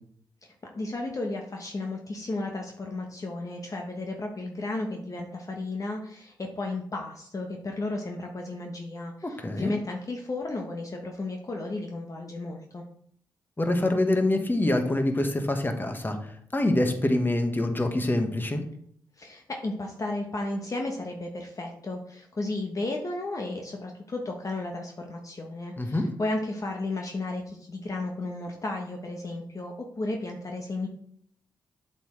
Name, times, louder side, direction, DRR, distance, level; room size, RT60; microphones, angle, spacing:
voice 1, 0.4-12.8 19.2-30.9, left 2 dB, 40° left, 1 dB, 1.2 m, -34 dB
voice 2, 9.4-9.7 13.6-16.2 16.5-18.6 25.8-26.1, left 1 dB, 25° left, 5 dB, 1.5 m, -25 dB
7.7 x 6.8 x 3.3 m, 0.65 s
hypercardioid pair, 40°, 8 cm